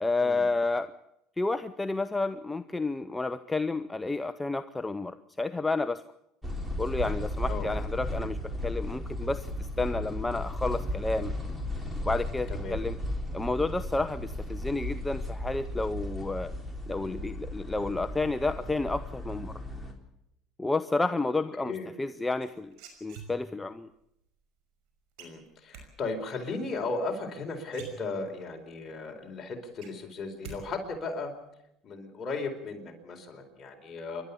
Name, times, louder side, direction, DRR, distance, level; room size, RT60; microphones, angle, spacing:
voice 1, 0.0-0.9 1.4-6.0 6.8-11.3 12.0-13.0 13.3-16.5 16.9-19.6 20.6-22.8 23.0-23.9, left 3 dB, 10° left, 10 dB, 0.7 m, -30 dB
sound 1, 6.4-19.9, left 1 dB, 5° right, 3.7 m, -35 dB
voice 2, 21.6-21.9 25.2-31.3 31.8-34.2, left 3 dB, 35° left, 2 dB, 4.4 m, -36 dB
sound 2, 22.4-23.7 25.2-25.9 27.3-27.4 27.7-28.5 28.9-29.0 29.3-30.6 30.8-31.3, right 6 dB, 75° right, 5.6 m, -46 dB
28.0 x 12.5 x 8.5 m, 0.83 s
supercardioid pair, 110°, 0 cm